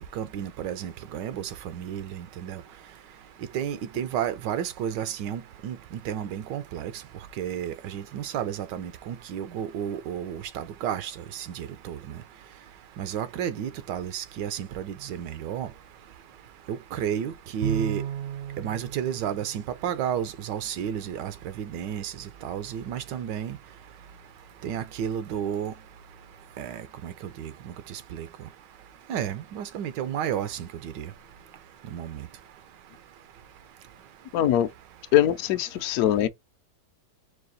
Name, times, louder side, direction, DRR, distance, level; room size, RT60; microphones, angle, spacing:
voice 1, 0.1-2.6 3.5-5.8 6.0-6.9 7.4-12.2 13.0-15.7 16.7-18.0 18.6-23.6 24.6-25.7 26.6-28.3 29.1-31.1 31.9-32.3, right 9 dB, 85° right, 1.3 m, -32 dB
Bowed string instrument, 17.6-20.2, right 10 dB, 70° right, 0.9 m, -34 dB
voice 2, 34.3-34.7 35.1-36.3, left 11 dB, 70° left, 1.0 m, -22 dB
4.7 x 2.3 x 3.9 m
omnidirectional pair, 1.9 m